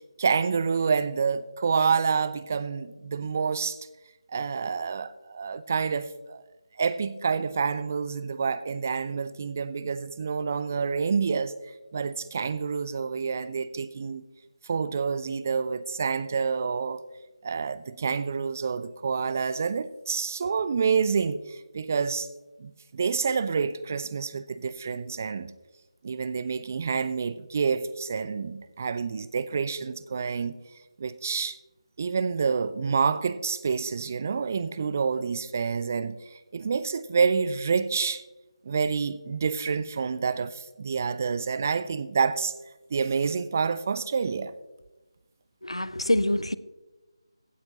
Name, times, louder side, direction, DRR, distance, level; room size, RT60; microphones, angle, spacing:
voice 1, 0.0-3.8 4.3-6.4 6.8-11.6 11.9-14.2 14.6-17.0 17.4-22.3 22.6-25.5 26.0-30.5 31.0-31.6 32.0-38.2 38.6-42.5 42.9-44.5, right 5 dB, 25° right, 0.3 m, -28 dB
voice 2, 45.6-46.6, left 1 dB, 85° left, 0.5 m, -25 dB
15.5 x 8.6 x 2.8 m
figure-of-eight pair, 160°, 3 cm